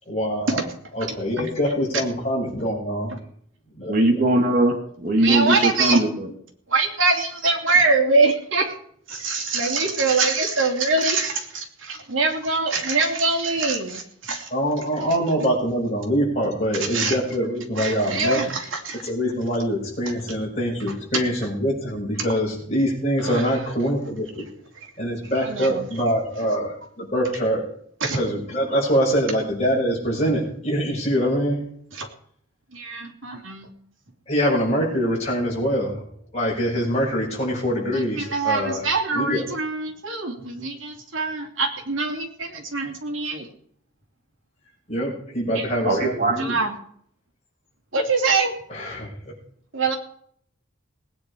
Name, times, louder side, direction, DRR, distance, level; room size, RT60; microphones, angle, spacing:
voice 1, 0.1-0.5 0.9-3.2 3.8-4.2 14.5-18.4 19.0-24.4 25.0-27.6 28.1-31.6 34.3-36.0 36.3-38.8 39.1-39.4 44.9-46.3 48.7-49.3, equal, 35° left, -3 dB, 6.3 m, -24 dB
voice 2, 3.9-6.3 45.8-46.6, right 1 dB, 40° right, 1 dB, 2.8 m, -21 dB
voice 3, 5.2-6.0 6.7-8.8 9.1-14.5 16.7-17.2 17.7-19.1 21.1-21.2 23.2-23.6 24.7-24.9 25.3-25.9 28.0-28.2 31.9-32.1 32.7-33.7 37.9-43.5 45.5-45.8 46.4-46.7 47.9-48.5 49.7-50.0, right 3 dB, 80° right, 3 dB, 2.9 m, -24 dB
19.0 x 9.6 x 4.9 m, 0.63 s
head